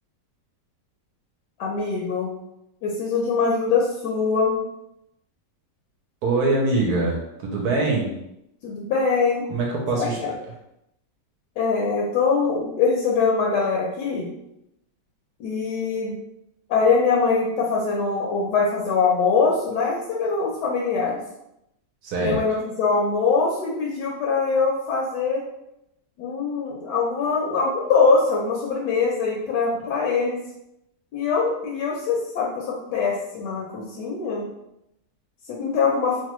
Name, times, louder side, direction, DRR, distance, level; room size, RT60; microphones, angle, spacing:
voice 1, 1.6-2.3 2.8-4.6 8.6-9.4 10.0-10.1 11.6-14.3 15.4-16.2 16.7-21.2 22.2-25.4 26.2-30.4 31.1-32.6 32.9-34.5 35.5-36.2, left 4 dB, 75° left, -3 dB, 1.1 m, -23 dB
voice 2, 6.2-8.1 9.5-10.4 22.0-22.4, right 2 dB, 70° right, -1 dB, 1.0 m, -23 dB
3.0 x 2.1 x 3.0 m, 0.84 s
omnidirectional pair, 1.9 m